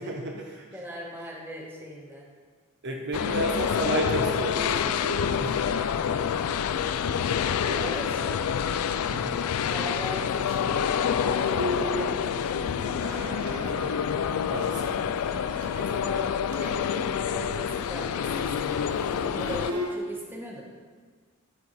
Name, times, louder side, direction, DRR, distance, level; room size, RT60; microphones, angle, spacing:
voice 1, 0.0-0.8 2.8-5.6 6.7-7.2 8.1-8.2 9.1-9.4 14.5-15.0, right 1 dB, 55° right, 0 dB, 0.9 m, -32 dB
voice 2, 0.7-2.2 5.7-6.2 7.6-8.4 9.7-12.2 12.7-14.5 15.7-20.6, equal, 10° right, -3 dB, 1.4 m, -40 dB
sound 1, 3.1-19.7, left 7 dB, 80° left, 0.4 m, -27 dB
Bowed string instrument, 11.5-15.8 16.1-16.2 16.5-16.8 17.1-19.9, left 1 dB, 80° right, 1.3 m, -37 dB
sound 2, 13.0-19.3, right 1 dB, 30° right, 0.9 m, -45 dB
13.0 x 4.6 x 4.1 m, 1.5 s
head